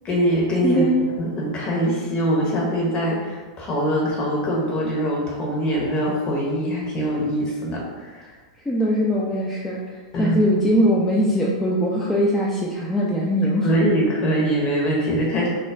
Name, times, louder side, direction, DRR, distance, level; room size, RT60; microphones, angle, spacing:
voice 1, 0.0-0.8 1.2-8.3 10.1-10.4 13.6-15.5, equal, 35° left, -3 dB, 0.9 m, -23 dB
voice 2, 0.6-1.0 8.7-13.7, equal, 10° left, -6 dB, 0.4 m, -21 dB
2.3 x 2.0 x 3.3 m, 1.4 s
hypercardioid pair, 100°, 3 cm